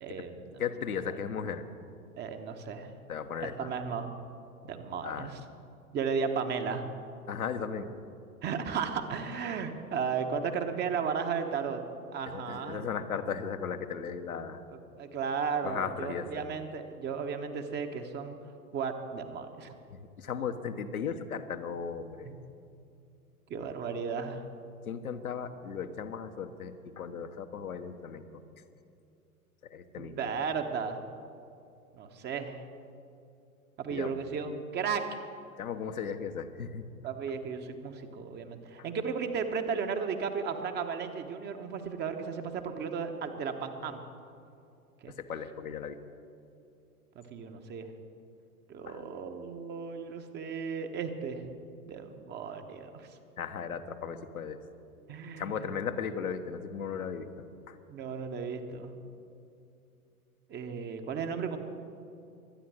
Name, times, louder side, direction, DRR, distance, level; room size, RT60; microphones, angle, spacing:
voice 1, 0.0-0.4 2.2-2.9 3.4-4.1 4.6-5.4 5.9-6.9 8.4-11.8 12.1-12.8 14.7-18.4 18.7-19.7 22.2-22.4 23.5-24.4 30.0-31.0 32.0-32.6 33.8-35.0 37.0-44.0 45.0-45.1 47.1-47.9 48.7-51.5 51.9-53.1 55.1-55.6 57.9-58.9 60.5-61.6, right 6 dB, 25° right, 6 dB, 1.2 m, -34 dB
voice 2, 0.6-1.6 3.1-3.7 5.0-5.3 7.3-7.9 12.3-14.6 15.6-16.4 19.9-22.3 24.8-28.4 29.7-30.3 33.9-34.1 35.6-36.9 45.1-46.0 48.9-49.0 53.4-54.6 55.4-57.3 57.7-57.8, left 7 dB, 70° left, 7 dB, 1.2 m, -36 dB
23.5 x 9.5 x 6.3 m, 2.6 s
figure-of-eight pair, 95°, 44 cm